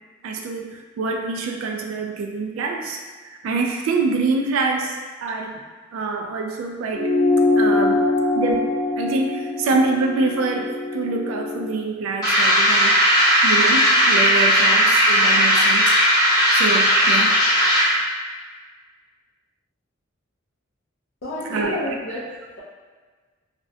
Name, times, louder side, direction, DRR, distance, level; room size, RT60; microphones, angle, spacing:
voice 1, 0.2-3.0 3.4-4.9 5.2-5.6 5.9-7.1 7.6-8.1 8.3-12.9 13.4-16.0 16.5-17.3 21.5-21.7, right 3 dB, 80° right, 2 dB, 0.3 m, -25 dB
sound 1, 6.9-11.7, left 2 dB, 45° right, 0.7 m, -22 dB
sound 2, 12.2-18.0, equal, 20° left, 0.7 m, -16 dB
voice 2, 21.2-22.6, left 1 dB, 65° left, -7 dB, 0.4 m, -30 dB
2.4 x 2.1 x 2.6 m, 1.4 s
head